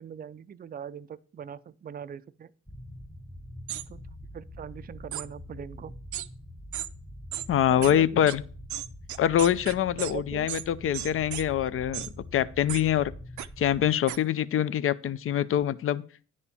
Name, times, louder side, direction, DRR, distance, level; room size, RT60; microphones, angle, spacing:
voice 1, 0.0-2.5 3.7-4.1 4.3-5.9 7.7-8.3 10.0-10.5, right 8 dB, 30° right, 0.5 m, -41 dB
sound 1, 2.7-13.9, left 1 dB, 5° left, 0.9 m, -45 dB
sound 2, 3.7-3.8 5.1-5.3 6.1-6.3 6.7-6.9 7.3-7.5 7.8-7.9 8.3-8.4 8.7-10.1 10.5-10.6 10.9-11.4 11.9-12.1 12.7-12.8 13.4-13.5 14.1-14.2, right 13 dB, 70° right, 0.6 m, -34 dB
voice 2, 7.5-8.4 9.2-13.1 13.6-16.0, left 10 dB, 45° left, 0.5 m, -25 dB
9.9 x 4.3 x 7.1 m
cardioid pair, 90°, 30 cm